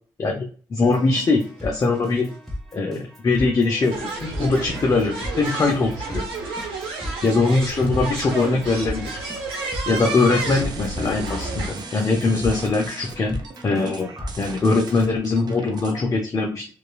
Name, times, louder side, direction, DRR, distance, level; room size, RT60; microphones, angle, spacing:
voice 1, 0.2-2.3 2.7-6.2 7.2-9.1 9.9-13.4 13.6-14.1 14.4-16.7, left 3 dB, 40° left, 1 dB, 0.6 m, -22 dB
Keyboard (musical), 0.8-15.1, equal, ahead, 1.3 m, -37 dB
sound 1, 1.4-1.5 1.7-1.9 2.9-3.0 3.9-11.7, right 3 dB, 80° right, 0.9 m, -31 dB
sound 2, 10.0-16.0, right 3 dB, 55° right, 0.5 m, -37 dB
2.9 x 2.3 x 2.3 m, 0.40 s
supercardioid pair, 55°, 9 cm